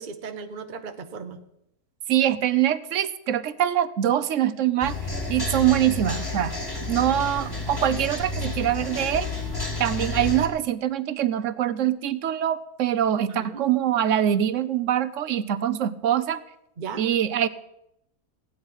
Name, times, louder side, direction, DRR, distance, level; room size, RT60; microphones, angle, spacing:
voice 1, 0.0-1.4 13.3-13.6 16.8-17.1, right 5 dB, 40° right, 7 dB, 0.8 m, -36 dB
voice 2, 2.1-5.0 5.3-6.6 6.9-9.3 9.8-16.4 17.0-17.5, right 11 dB, 65° right, 15 dB, 0.9 m, -24 dB
sound 1, 4.8-10.5, left 2 dB, 15° left, 1.9 m, -30 dB
16.0 x 9.6 x 5.6 m, 0.81 s
omnidirectional pair, 1.6 m